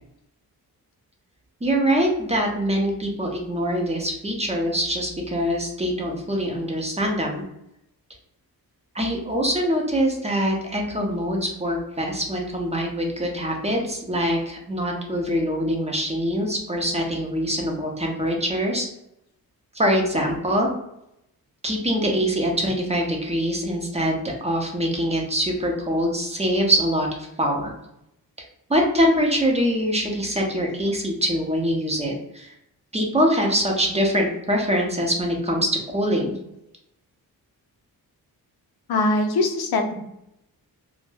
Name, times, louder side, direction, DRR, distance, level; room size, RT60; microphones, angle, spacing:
voice 1, 1.6-7.4 8.9-18.9 19.7-20.7 21.6-27.1 27.4-27.7 28.7-32.5 32.9-36.4, equal, 20° right, 0 dB, 0.5 m, -24 dB
voice 2, 38.9-39.9, left 2 dB, 80° left, 2 dB, 0.6 m, -22 dB
2.2 x 2.0 x 3.2 m, 0.82 s
cardioid pair, 105°, 37 cm